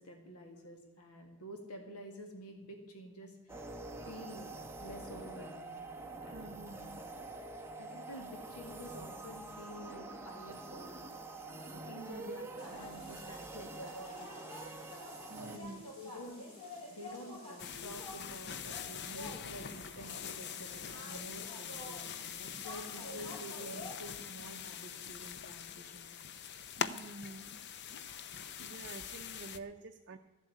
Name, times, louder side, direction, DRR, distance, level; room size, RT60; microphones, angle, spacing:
voice 1, 0.0-3.7 4.0-4.5 4.8-5.8 6.2-6.8 7.8-11.0 11.4-14.3 15.3-15.7 15.9-16.5 16.9-26.1 26.3-26.7 28.2-28.9, equal, 85° left, 4 dB, 2.0 m, -50 dB
sound 1, 3.5-15.6, right 2 dB, 10° right, 1.1 m, -46 dB
voice 2, 6.3-7.0 12.0-12.4 15.3-15.9 26.8-27.5 28.6-30.2, right 2 dB, 55° right, 5 dB, 0.7 m, -48 dB
sound 2, 12.6-24.0, left 1 dB, 25° left, 5.5 m, -49 dB
sound 3, 17.6-29.6, left 7 dB, 50° left, 0.7 m, -43 dB
13.5 x 7.6 x 9.3 m, 1.2 s
head